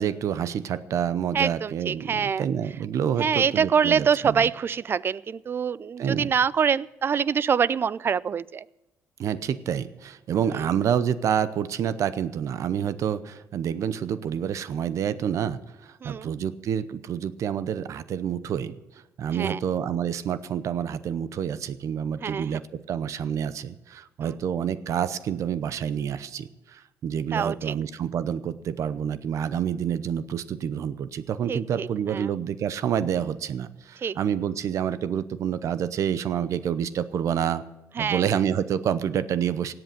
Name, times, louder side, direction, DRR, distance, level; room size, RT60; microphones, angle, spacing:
voice 1, 0.0-4.5 6.0-6.3 9.2-18.7 19.2-22.6 22.9-37.6 38.0-39.7, right 8 dB, 65° right, 14 dB, 0.7 m, -28 dB
voice 2, 1.3-2.5 3.2-8.6 10.5-10.6 16.0-16.3 19.3-19.6 22.2-22.5 24.2-24.3 27.3-27.7 31.5-32.3 34.0-34.2 38.0-38.3, right 7 dB, 40° right, 22 dB, 0.4 m, -25 dB
17.0 x 7.9 x 6.6 m, 0.98 s
cardioid pair, 85°, 6 cm